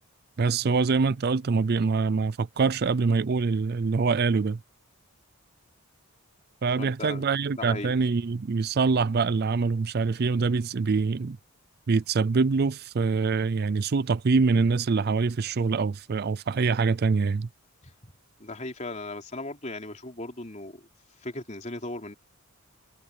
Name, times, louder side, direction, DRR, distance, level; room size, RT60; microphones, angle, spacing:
voice 1, 0.4-4.6 6.6-11.4 11.9-17.5, right 4 dB, 45° right, 0.4 m, -24 dB
voice 2, 6.8-7.3 7.6-7.9 17.8-18.1 18.4-20.9 21.2-22.1, left 2 dB, 30° left, 3.6 m, -37 dB
head